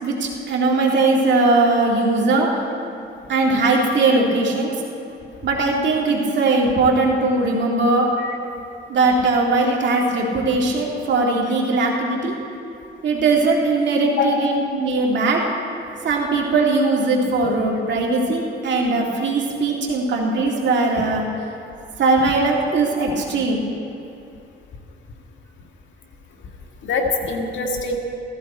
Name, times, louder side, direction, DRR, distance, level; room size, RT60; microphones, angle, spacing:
voice 1, 0.0-2.5 3.3-4.7 5.4-8.1 8.9-12.4 13.0-15.4 16.0-21.2 22.0-23.6, right 3 dB, 65° right, -1 dB, 2.4 m, -19 dB
voice 2, 14.2-14.6 26.8-28.0, left 4 dB, 70° left, 1 dB, 1.8 m, -24 dB
15.0 x 14.5 x 4.4 m, 2.7 s
cardioid pair, 90°, 20 cm